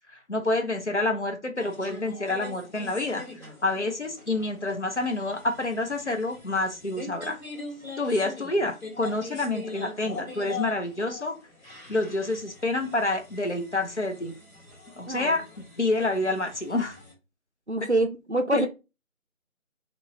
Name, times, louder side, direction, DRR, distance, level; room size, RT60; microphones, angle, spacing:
voice 1, 0.3-3.2 3.6-7.4 8.0-11.4 11.9-14.3 15.0-15.4 15.8-17.0 18.5-18.7, left 2 dB, 55° left, 0.7 m, -28 dB
sound 1, 1.6-17.1, left 3 dB, 75° left, 1.5 m, -43 dB
voice 2, 15.1-15.4 17.7-18.7, right 2 dB, 55° right, 0.5 m, -26 dB
3.0 x 2.2 x 3.8 m
figure-of-eight pair, 180°, 42 cm